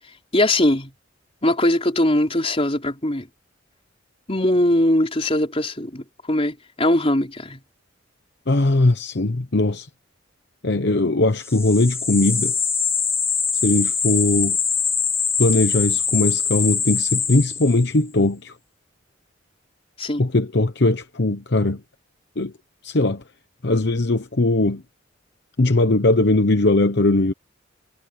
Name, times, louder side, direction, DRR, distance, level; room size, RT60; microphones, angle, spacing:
voice 1, 0.3-0.9 1.4-3.3 4.3-7.6 20.0-20.3, left 1 dB, 30° left, 4.2 m, -21 dB
voice 2, 8.5-9.9 10.6-12.5 13.6-14.6 15.4-18.5 20.2-21.8 22.4-22.5 22.8-23.2 23.6-24.8 25.6-27.3, left 2 dB, 60° left, 1.0 m, -19 dB
sound 1, 11.4-18.0, left 6 dB, 15° left, 1.0 m, -23 dB
head